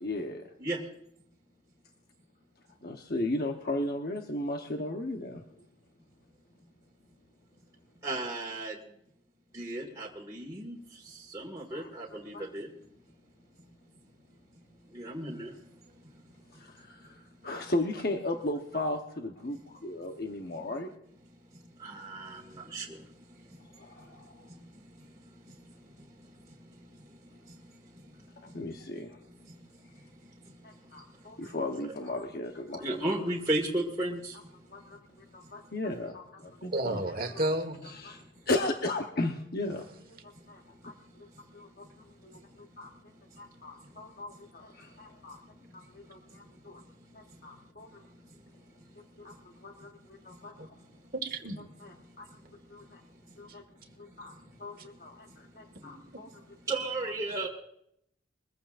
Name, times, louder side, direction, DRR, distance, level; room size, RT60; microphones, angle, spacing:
voice 1, 0.0-0.5 2.8-5.7 9.8-9.9 11.7-12.5 16.5-20.9 23.7-24.5 28.4-29.2 30.6-33.2 34.6-37.5 37.8-46.8 47.1-48.0 49.0-50.8 51.8-53.0 53.4-53.7 54.0-56.6, left 2 dB, 50° left, 3 dB, 1.0 m, -37 dB
voice 2, 8.0-8.7 9.5-10.8 11.3-12.7 14.9-15.5 21.8-22.4 22.7-22.9 32.8-34.3 56.7-57.5, right 2 dB, 20° right, -4 dB, 1.8 m, -33 dB
voice 3, 36.7-37.8 50.6-50.7 51.1-51.6, right 1 dB, 45° right, 7 dB, 1.5 m, -31 dB
22.5 x 15.0 x 2.5 m, 0.73 s
head